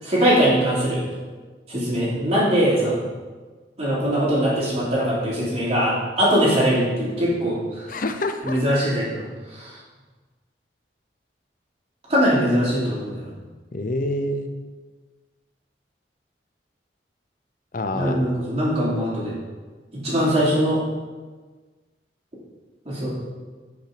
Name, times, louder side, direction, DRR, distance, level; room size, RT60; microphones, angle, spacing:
voice 1, 0.0-1.1 1.7-3.0 3.8-7.9 8.4-9.2 9.5-9.7 12.1-13.3 17.9-19.4 19.9-20.8 22.8-23.1, equal, 35° right, -7 dB, 3.0 m, -21 dB
voice 2, 7.9-8.8 13.7-14.6 17.7-18.2, left 1 dB, 50° left, 8 dB, 0.7 m, -27 dB
8.8 x 5.9 x 5.1 m, 1.4 s
head